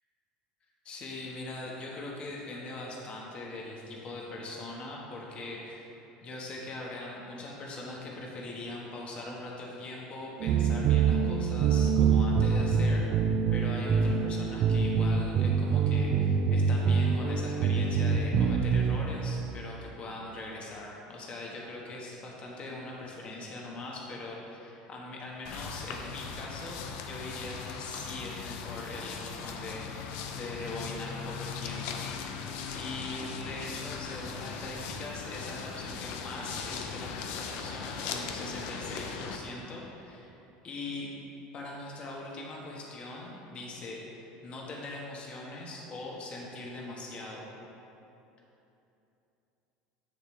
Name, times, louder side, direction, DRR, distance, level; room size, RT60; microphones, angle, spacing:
voice 1, 0.8-5.9 6.2-32.4 32.7-40.3 40.6-41.1 41.5-47.5, left 2 dB, 40° left, -3 dB, 1.3 m, -41 dB
sound 1, 10.4-19.0, right 6 dB, 50° right, 0.4 m, -25 dB
sound 2, 25.4-39.4, left 6 dB, 70° left, 0.6 m, -39 dB
7.4 x 6.6 x 3.3 m, 2.9 s
supercardioid pair, 115°, 3 cm